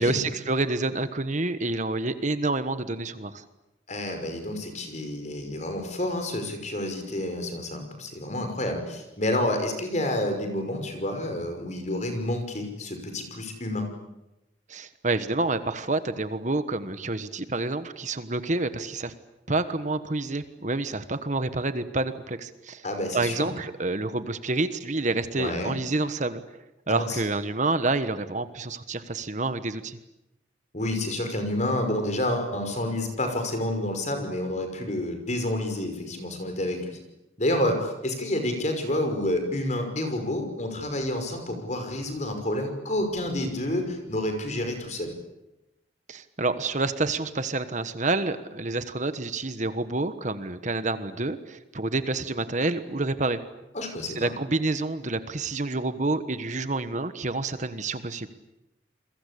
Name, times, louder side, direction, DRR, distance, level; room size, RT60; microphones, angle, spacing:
voice 1, 0.0-3.4 14.7-19.1 19.5-22.8 23.1-26.4 26.9-30.0 46.1-53.4 54.2-58.3, right 2 dB, 40° right, 11 dB, 1.3 m, -28 dB
voice 2, 3.9-14.0 22.8-23.5 25.4-25.8 26.9-27.2 30.7-37.0 37.4-45.1 53.7-54.3, left 1 dB, 40° left, 6 dB, 5.8 m, -29 dB
29.0 x 22.5 x 8.5 m, 0.94 s
head